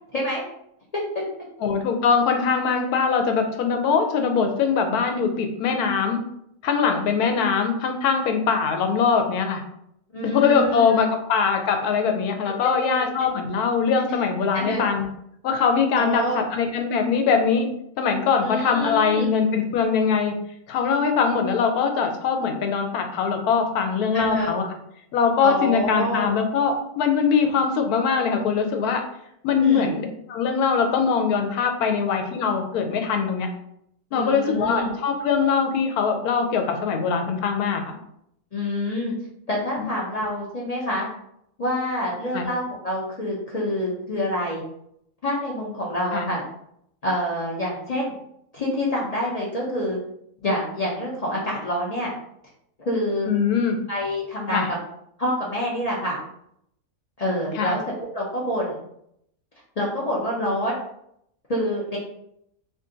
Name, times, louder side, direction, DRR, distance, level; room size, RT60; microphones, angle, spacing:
voice 1, 1.6-6.2 6.6-9.6 10.2-15.1 15.4-17.7 18.0-20.3 20.7-24.7 25.1-29.0 29.4-33.5 34.1-38.0 42.3-42.4 46.1-46.3 53.2-53.8 54.5-54.7 57.5-57.7, left 6 dB, 90° left, 5 dB, 1.1 m, -22 dB
voice 2, 10.1-10.8 12.4-12.7 14.5-14.8 16.0-16.4 18.4-19.3 24.1-24.5 25.4-26.3 29.6-29.9 34.1-34.9 38.5-39.1 39.5-41.1 41.6-44.6 45.2-46.5 47.0-48.1 48.5-50.0 50.4-52.1 52.8-53.3 53.9-54.6 55.2-56.2 57.2-57.8 58.1-58.8 59.8-60.7 61.5-62.0, left 1 dB, 70° left, -4 dB, 0.3 m, -26 dB
2.5 x 2.5 x 3.7 m, 0.74 s
omnidirectional pair, 1.5 m